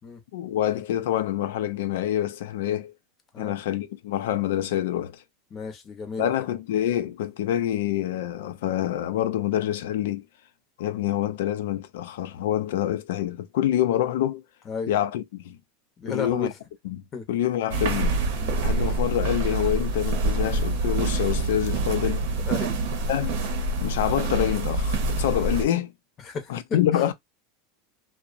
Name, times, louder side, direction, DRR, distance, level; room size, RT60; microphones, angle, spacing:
voice 1, 0.3-2.9 3.4-5.2 6.2-10.2 10.8-14.4 14.9-15.6 16.1-16.5 16.8-17.0 17.3-18.2 18.6-22.3 23.1-23.3 23.8-25.9 26.5-27.1, left 11 dB, 80° left, 0.4 m, -26 dB
voice 2, 5.5-6.5 14.7-14.9 16.0-16.6 17.1-17.3 18.4-18.6 22.5-22.7 26.2-27.0, left 5 dB, 25° left, 0.7 m, -33 dB
steps in a large stairwell, 17.7-25.7, right 2 dB, 70° right, 0.7 m, -26 dB
2.7 x 2.0 x 2.4 m
supercardioid pair, 150°, 0 cm